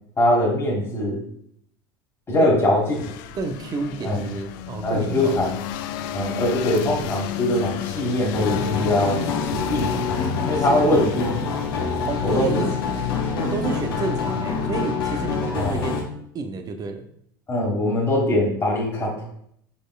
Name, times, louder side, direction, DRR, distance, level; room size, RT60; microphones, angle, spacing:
voice 1, 0.2-1.2 2.3-2.8 4.0-4.2 4.8-5.5 6.1-9.2 9.5-10.0 10.4-11.3 12.2-12.6 15.6-15.8 17.5-19.2, left 1 dB, 20° left, -4 dB, 1.7 m, -22 dB
sound 1, 2.9-14.6, left 11 dB, 65° left, 0.4 m, -33 dB
voice 2, 3.3-5.6 10.6-11.1 12.1-12.8 13.3-16.0 16.3-17.1, right 4 dB, 30° right, 7 dB, 0.6 m, -30 dB
sound 2, 8.3-16.0, left 5 dB, 80° left, 0.9 m, -26 dB
4.9 x 4.2 x 2.4 m, 0.69 s
hypercardioid pair, 85°, 12 cm